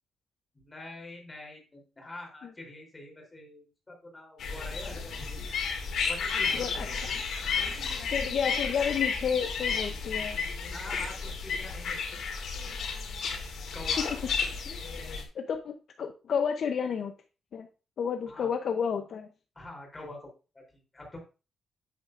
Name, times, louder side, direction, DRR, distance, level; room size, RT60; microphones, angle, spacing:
voice 1, 0.5-5.2 6.0-7.2 10.7-12.2 13.7-14.1 18.3-18.5 19.5-21.2, left 2 dB, 15° left, 0 dB, 3.2 m, -45 dB
sound 1, 4.4-15.2, left 5 dB, 85° left, 2.7 m, -32 dB
voice 2, 8.1-10.4 14.0-14.1 14.7-14.8 15.3-17.1 17.5-17.7 18.0-19.3, left 7 dB, 55° left, 6 dB, 0.6 m, -31 dB
9.1 x 8.7 x 2.5 m, 0.32 s
wide cardioid pair, 170°, 0 cm